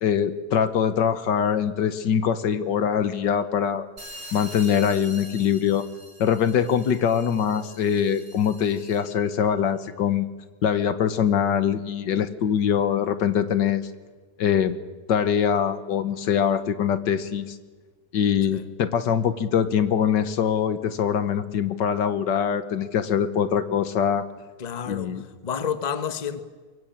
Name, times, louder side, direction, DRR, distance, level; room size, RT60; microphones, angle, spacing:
voice 1, 0.0-3.9 4.3-5.9 6.2-10.3 10.6-13.8 14.4-14.8 15.1-17.6 18.1-24.3 24.9-25.2, left 8 dB, 75° left, 1.8 m, -23 dB
sound 1, 4.0-9.2, right 1 dB, 45° right, 5.6 m, -44 dB
voice 2, 24.6-26.4, left 7 dB, 25° left, 1.1 m, -30 dB
22.5 x 22.0 x 8.8 m
omnidirectional pair, 1.9 m